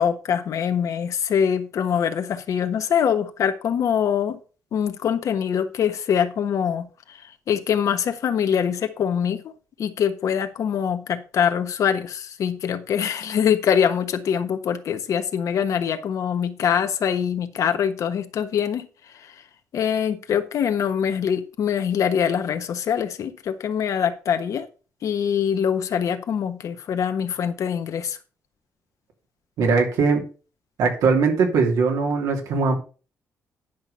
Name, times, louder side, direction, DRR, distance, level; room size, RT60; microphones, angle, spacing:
voice 1, 0.0-4.4 4.7-9.5 9.8-18.9 19.1-19.3 19.7-24.7 25.0-28.2, left 8 dB, 65° left, 8 dB, 1.2 m, -24 dB
voice 2, 29.6-30.2 30.8-32.8, right 4 dB, 85° right, 2 dB, 2.8 m, -20 dB
10.5 x 5.8 x 5.5 m, 0.35 s
cardioid pair, 115°, 6 cm